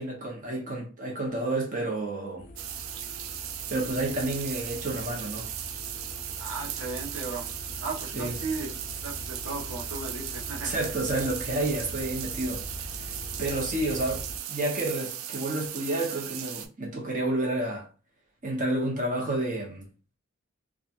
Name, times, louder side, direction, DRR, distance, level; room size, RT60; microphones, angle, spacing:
voice 1, 0.0-2.5 3.7-5.5 8.1-8.4 10.6-12.6 13.4-17.9 18.4-19.8, right 2 dB, 40° right, 1.0 m, -30 dB
sound 1, 2.4-14.4, left 1 dB, 45° left, 0.4 m, -42 dB
sound 2, 2.6-16.7, right 10 dB, 90° right, 0.4 m, -37 dB
voice 2, 6.4-7.5 7.8-8.7 9.0-10.7, right 3 dB, 65° right, 0.9 m, -35 dB
2.9 x 2.4 x 2.5 m
head